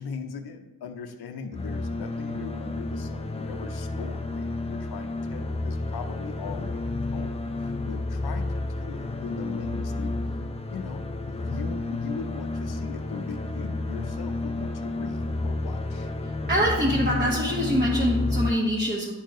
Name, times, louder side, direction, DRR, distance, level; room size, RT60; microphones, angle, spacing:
voice 1, 0.0-10.1 10.7-16.1, left 6 dB, 90° left, 6 dB, 0.8 m, -39 dB
sound 1, 1.5-18.5, left 2 dB, 15° left, 0.4 m, -31 dB
voice 2, 16.5-19.1, equal, 25° right, -5 dB, 1.2 m, -24 dB
11.0 x 4.6 x 3.1 m, 1.1 s
wide cardioid pair, 150°, 37 cm